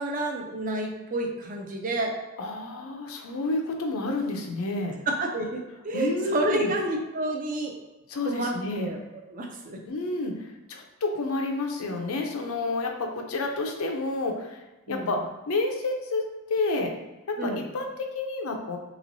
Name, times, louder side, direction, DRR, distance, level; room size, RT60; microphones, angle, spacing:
voice 1, 0.0-2.2 5.1-7.7 8.2-9.0 9.3-9.8 14.9-15.1 17.4-17.6, right 1 dB, 35° right, 2 dB, 0.4 m, -29 dB
voice 2, 2.4-4.9 5.9-6.7 8.1-8.9 9.9-14.6 14.9-16.9 17.3-18.8, left 2 dB, 75° left, 3 dB, 0.5 m, -30 dB
3.5 x 3.0 x 2.6 m, 1.1 s
head